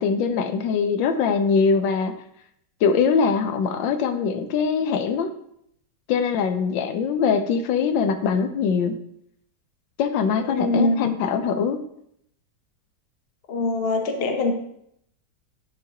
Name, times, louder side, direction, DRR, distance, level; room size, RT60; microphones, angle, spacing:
voice 1, 0.0-2.1 2.8-5.3 6.1-9.0 10.0-11.8, left 6 dB, 90° left, 8 dB, 1.4 m, -22 dB
voice 2, 10.4-11.2 13.5-14.5, left 3 dB, 45° left, 4 dB, 0.9 m, -23 dB
10.0 x 4.7 x 2.9 m, 0.71 s
omnidirectional pair, 2.0 m